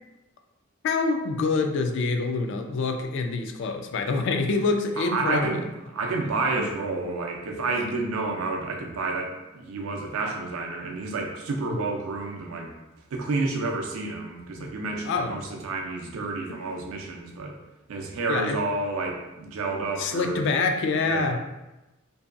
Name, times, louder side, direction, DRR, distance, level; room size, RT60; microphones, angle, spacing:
voice 1, 0.8-5.5 6.6-6.7 11.7-11.8 14.6-14.7 15.1-15.3 18.3-18.6 20.0-21.4, left 4 dB, 60° left, 5 dB, 0.3 m, -26 dB
voice 2, 5.0-12.7 13.1-17.6 17.9-20.4 21.0-21.4, right 3 dB, 80° right, 2 dB, 0.4 m, -30 dB
2.7 x 2.2 x 2.4 m, 1.0 s
head